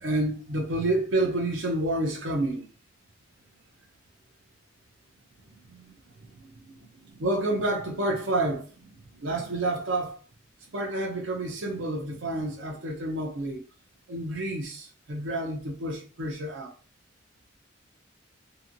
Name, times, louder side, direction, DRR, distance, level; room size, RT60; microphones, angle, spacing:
voice 1, 0.0-2.7 7.2-8.7 9.2-10.1 10.7-13.6 14.1-16.7, right 1 dB, 75° right, 0.6 m, -29 dB
2.8 x 2.7 x 2.5 m
head